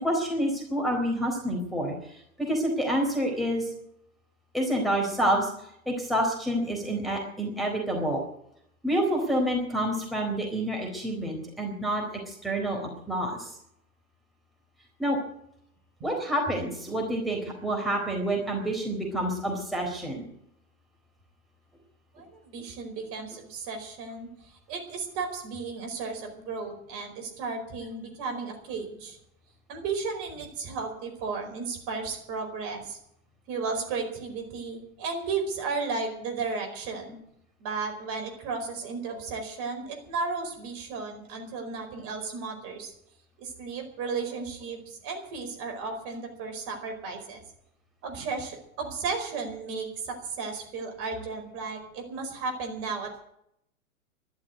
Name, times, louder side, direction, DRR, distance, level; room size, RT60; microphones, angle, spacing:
voice 1, 0.0-2.0 2.4-3.7 4.5-5.5 5.9-8.2 8.8-12.8 13.1-13.5 15.0-15.2 16.0-20.2, right 1 dB, ahead, -2 dB, 4.1 m, -28 dB
voice 2, 22.1-29.2 29.7-33.0 33.5-37.2 37.6-42.9 43.4-47.4 48.0-53.2, right 4 dB, 35° right, 3 dB, 4.8 m, -34 dB
12.5 x 12.0 x 9.3 m, 0.73 s
figure-of-eight pair, 110°, 42 cm